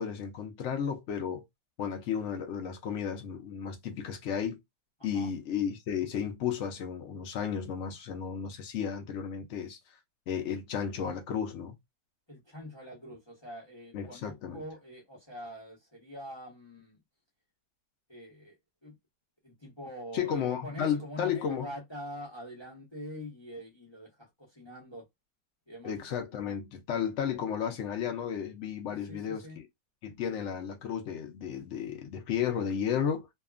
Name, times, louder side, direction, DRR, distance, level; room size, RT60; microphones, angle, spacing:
voice 1, 0.0-1.4 1.8-4.6 5.0-9.8 10.3-11.7 13.9-14.6 20.1-21.7 25.8-29.6 30.0-33.3, left 8 dB, 90° left, 0.6 m, -33 dB
voice 2, 12.3-17.0 18.1-19.0 19.4-25.1 25.7-25.9 28.9-29.6, equal, 25° left, 0.5 m, -44 dB
2.8 x 2.3 x 2.3 m
omnidirectional pair, 1.9 m